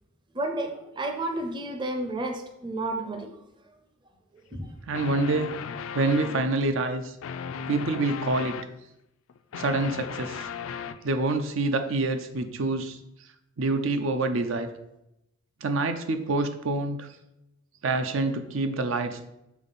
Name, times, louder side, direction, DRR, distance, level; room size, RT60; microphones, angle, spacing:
voice 1, 0.3-3.3 4.5-4.7, right 2 dB, 25° right, 4 dB, 0.6 m, -31 dB
sound 1, 4.9-6.6 7.2-8.7 9.3-11.1, left 6 dB, 80° left, 0.4 m, -36 dB
voice 2, 4.9-5.5 5.9-7.1 7.7-8.6 9.5-10.5 11.0-13.0 13.6-14.7 15.6-17.1 17.8-19.2, right 2 dB, 70° right, 8 dB, 0.5 m, -26 dB
7.1 x 3.6 x 4.1 m, 0.86 s
head